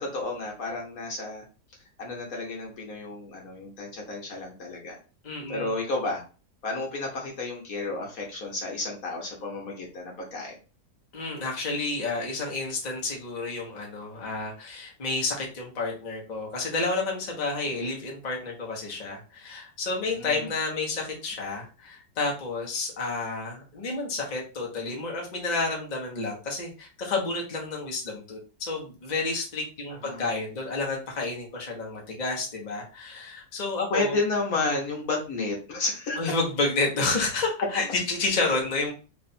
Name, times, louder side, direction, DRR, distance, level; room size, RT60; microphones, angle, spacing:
voice 1, 0.0-1.4 2.0-5.0 5.5-6.2 6.6-10.6 20.0-20.5 30.0-30.3 33.9-36.2, left 3 dB, 60° left, 0 dB, 1.4 m, -31 dB
voice 2, 5.2-5.7 11.1-34.2 36.2-38.9, left 3 dB, 30° left, -1 dB, 1.0 m, -30 dB
3.4 x 2.4 x 4.1 m, 0.34 s
omnidirectional pair, 1.8 m